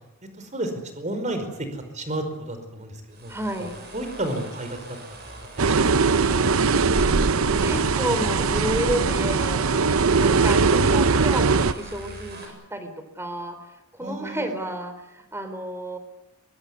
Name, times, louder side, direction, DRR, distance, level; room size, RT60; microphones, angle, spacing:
voice 1, 0.4-3.3 3.6-4.8 5.3-6.1 14.0-14.5, right 1 dB, 35° right, 8 dB, 5.0 m, -32 dB
sound 1, 3.1-12.5, right 2 dB, 50° right, 7.7 m, -42 dB
voice 2, 3.3-3.8 7.4-9.7 10.2-12.9 13.2-13.6 13.9-16.0, right 1 dB, 10° right, 8 dB, 3.9 m, -30 dB
sound 2, 5.6-11.7, right 4 dB, 80° right, 0.9 m, -20 dB
23.0 x 23.0 x 9.6 m, 0.91 s
head